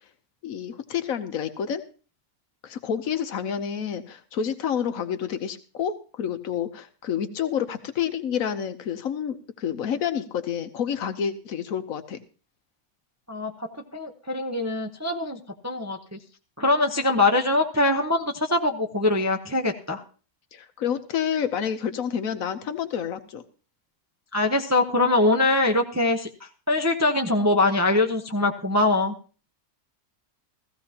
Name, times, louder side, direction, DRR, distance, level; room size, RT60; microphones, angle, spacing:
voice 1, 0.4-1.8 2.6-12.2 20.5-23.4, left 8 dB, 65° left, 10 dB, 1.2 m, -29 dB
voice 2, 13.3-16.2 16.6-20.0 24.3-29.1, left 2 dB, 20° right, 3 dB, 0.5 m, -23 dB
15.5 x 15.0 x 2.9 m, 0.37 s
omnidirectional pair, 1.6 m